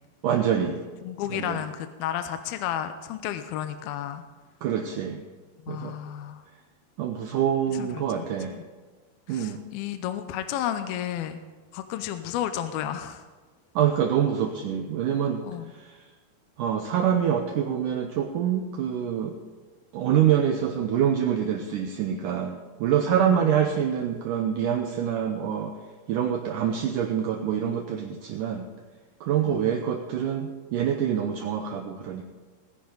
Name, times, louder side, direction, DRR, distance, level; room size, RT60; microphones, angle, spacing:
voice 1, 0.2-0.8 1.3-1.6 4.6-5.2 5.7-5.9 7.0-8.6 9.3-9.6 13.8-15.4 16.6-19.4 19.9-25.7 26.1-28.7 29.2-32.2, right 9 dB, 75° right, 4 dB, 2.0 m, -25 dB
voice 2, 1.0-4.2 5.6-6.4 7.7-8.3 8.5-8.6 9.3-11.4 11.7-13.3 15.4-15.7 23.1-23.5 29.5-29.8, left 11 dB, 80° left, 9 dB, 2.5 m, -32 dB
20.0 x 10.5 x 3.9 m, 1.4 s
omnidirectional pair, 4.6 m